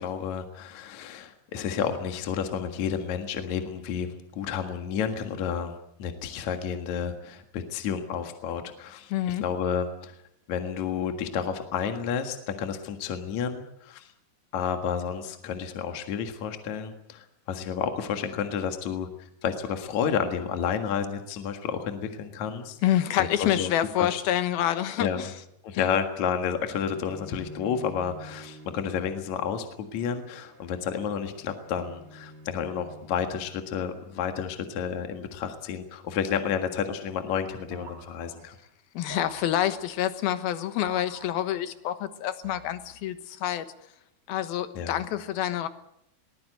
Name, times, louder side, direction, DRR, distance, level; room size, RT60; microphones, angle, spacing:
voice 1, 0.0-5.7 6.0-9.1 9.4-10.1 10.5-14.1 14.5-19.1 19.4-22.8 23.2-23.7 24.0-24.2 25.0-25.2 25.6-38.6 44.7-45.0, left 7 dB, 55° left, 6 dB, 2.7 m, -31 dB
voice 2, 9.1-9.4 22.8-25.3 25.7-25.9 38.9-43.7 44.3-45.7, left 12 dB, 75° left, 11 dB, 3.1 m, -27 dB
Bowed string instrument, 26.9-34.0, equal, 80° right, 7.6 m, -49 dB
sound 1, 37.7-38.7 39.1-40.0 40.9-41.9 42.4-43.1, right 5 dB, 45° right, 1.5 m, -47 dB
22.0 x 19.5 x 8.0 m, 0.76 s
omnidirectional pair, 4.4 m